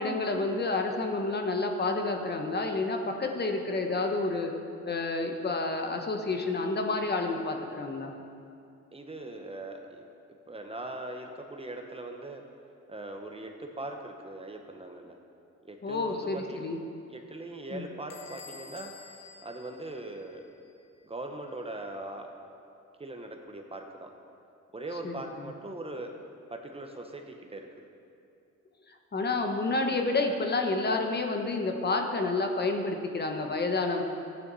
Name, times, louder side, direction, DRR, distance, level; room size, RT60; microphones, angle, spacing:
voice 1, 0.0-4.5 4.9-8.1 15.8-16.8 17.7-17.9 25.0-25.2 29.1-34.0, left 3 dB, 35° left, 3 dB, 1.1 m, -29 dB
voice 2, 8.9-10.0 10.5-12.4 12.9-15.2 15.6-16.7 17.1-18.9 19.4-20.4 21.0-22.3 23.0-24.1 24.7-26.1 26.5-27.7, right 2 dB, 20° right, 3 dB, 1.0 m, -40 dB
Bell / Squeak, 18.1-20.6, left 5 dB, 55° left, 1.2 m, -50 dB
13.5 x 9.5 x 4.1 m, 2.5 s
cardioid pair, 90°, 30 cm